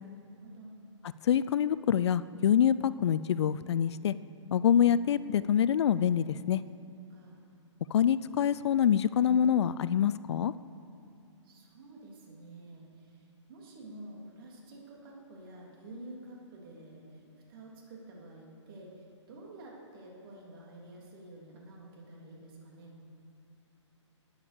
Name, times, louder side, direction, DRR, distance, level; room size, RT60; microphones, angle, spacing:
voice 1, 0.1-0.7 7.1-7.4 11.4-17.2 17.5-23.0, right 1 dB, 45° right, -2 dB, 3.2 m, -49 dB
voice 2, 1.2-4.1 4.5-6.6 7.9-10.5, left 9 dB, 60° left, 16 dB, 0.4 m, -26 dB
12.5 x 8.8 x 6.8 m, 2.5 s
hypercardioid pair, 140°, 16 cm